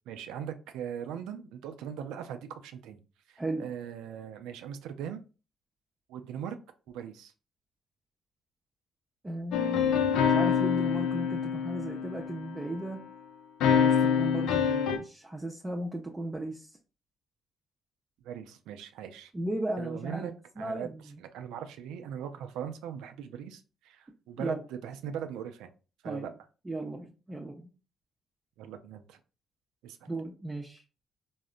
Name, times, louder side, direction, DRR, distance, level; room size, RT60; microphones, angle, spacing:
voice 1, 0.1-3.0 3.3-5.2 6.1-6.6 6.9-7.3 18.2-19.3 19.8-20.9 21.2-24.6 24.8-25.7 26.0-26.3 28.6-29.2 29.8-30.1, right 8 dB, 75° right, 8 dB, 0.4 m, -40 dB
voice 2, 3.4-3.7 9.2-13.0 13.7-16.8 19.3-20.3 20.6-21.2 24.4-24.6 26.0-26.3 26.6-27.7 30.1-30.8, right 1 dB, 20° right, 1 dB, 0.5 m, -36 dB
sound 1, 9.5-12.7 13.6-15.0, left 7 dB, 75° left, 0.4 m, -26 dB
3.6 x 2.0 x 2.4 m, 0.34 s
hypercardioid pair, 50°, 0 cm